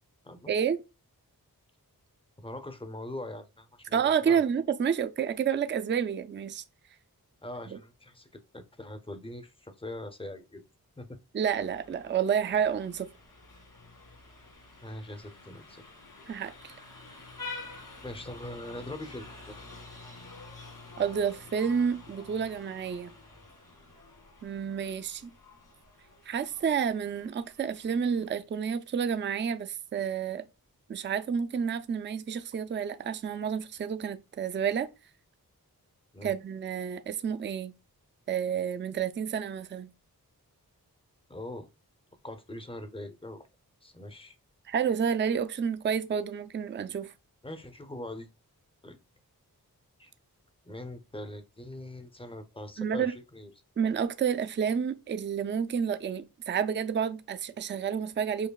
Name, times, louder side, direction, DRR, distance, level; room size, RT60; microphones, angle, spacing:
voice 1, 0.5-0.8 3.9-6.6 7.7-7.8 11.3-13.1 16.3-16.7 21.0-23.1 24.4-25.3 26.3-30.4 30.9-34.9 36.2-37.7 38.3-39.9 44.7-47.1 52.8-53.1 53.8-58.5, right 7 dB, 30° right, 0.4 m, -30 dB
voice 2, 2.4-4.5 7.4-10.6 11.0-11.1 14.8-15.9 18.0-19.6 36.1-36.3 41.3-41.7 42.2-43.5 43.8-44.4 47.4-48.3 48.8-49.0 50.0-50.1 50.6-53.5, left 1 dB, 15° left, 0.6 m, -42 dB
Vehicle horn car horn honking, 11.5-28.3, left 3 dB, 70° left, 1.9 m, -49 dB
5.3 x 2.0 x 2.2 m
cardioid pair, 40°, 38 cm